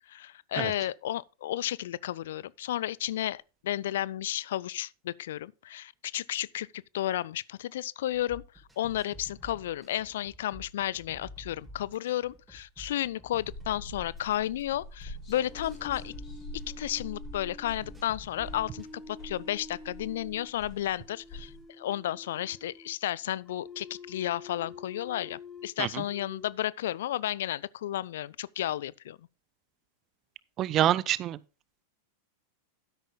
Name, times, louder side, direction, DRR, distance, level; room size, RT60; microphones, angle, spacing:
voice 1, 0.1-8.4 8.8-16.1 16.8-29.2, left 13 dB, 60° left, 0.4 m, -33 dB
sound 1, 8.1-19.0, left 1 dB, 5° right, 5.3 m, -50 dB
sound 2, 13.4-21.6, left 1 dB, 30° left, 4.6 m, -46 dB
sound 3, 15.5-20.5 20.9-22.9 23.4-25.7 26.0-26.5, left 3 dB, 15° left, 3.5 m, -48 dB
voice 2, 30.6-31.4, right 12 dB, 35° right, 0.5 m, -26 dB
12.5 x 10.5 x 2.3 m
figure-of-eight pair, 90°, 0 cm